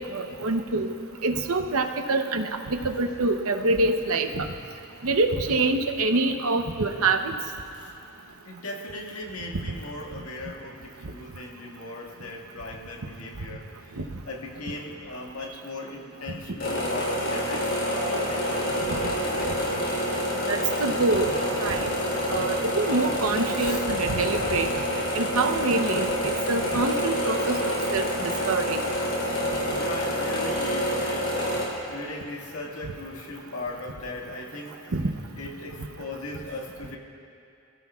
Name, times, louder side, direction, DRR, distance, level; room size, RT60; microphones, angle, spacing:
voice 1, 0.1-0.9 1.2-4.4 5.0-7.3 20.5-21.3 21.6-21.9 22.3-24.7 25.1-28.8 34.9-35.0, right 3 dB, 70° right, 6 dB, 0.9 m, -25 dB
voice 2, 8.4-19.6 23.6-23.8 29.1-34.8 35.4-37.0, left 2 dB, 80° left, -1 dB, 1.9 m, -38 dB
sound 1, 16.6-31.6, equal, 55° left, 3.6 m, -27 dB
27.0 x 15.5 x 2.4 m, 2.6 s
head